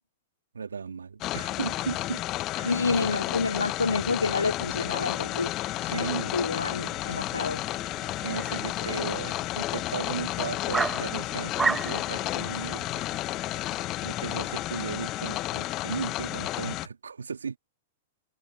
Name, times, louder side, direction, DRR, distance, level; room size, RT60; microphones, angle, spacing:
voice 1, 0.5-2.2 2.5-3.0 5.8-6.4 8.2-13.0 13.8-17.6, right 5 dB, 85° right, 2.4 m, -36 dB
sound 1, 1.2-16.9, left 16 dB, 35° left, 0.7 m, -32 dB
voice 2, 2.6-5.5 5.9-7.6, left 4 dB, 90° left, 2.6 m, -29 dB
sound 2, 6.9-14.8, right 4 dB, 10° right, 1.1 m, -36 dB
hypercardioid pair, 105°, 0 cm